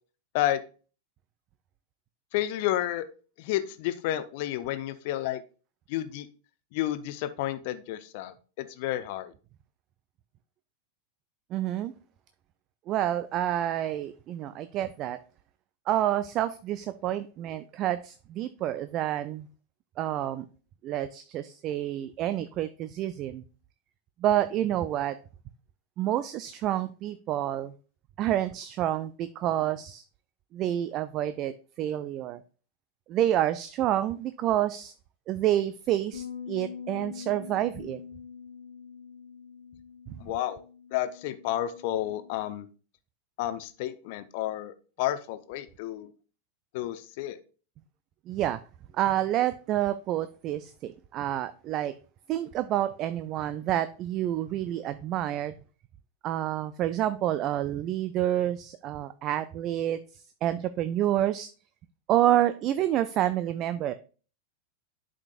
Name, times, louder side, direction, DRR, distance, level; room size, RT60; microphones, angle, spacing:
voice 1, 2.3-3.1 3.4-5.4 5.9-6.3 6.7-9.3 40.2-40.6 40.9-42.7 43.4-46.1 46.7-47.4, left 13 dB, 50° left, 11 dB, 0.7 m, -31 dB
voice 2, 11.5-11.9 12.9-15.2 15.9-19.5 20.0-20.4 20.8-23.4 24.2-25.2 26.0-27.7 28.2-30.0 30.5-32.4 33.1-34.9 35.3-38.0 40.1-40.2 48.3-48.6 48.9-52.0 52.3-55.5 56.2-60.0 60.4-61.5 62.1-63.9, right 12 dB, 35° right, 13 dB, 0.4 m, -28 dB
Bass guitar, 36.1-42.4, left 6 dB, 80° left, 1.7 m, -44 dB
11.5 x 5.0 x 2.4 m, 0.36 s
figure-of-eight pair, 90°, 0 cm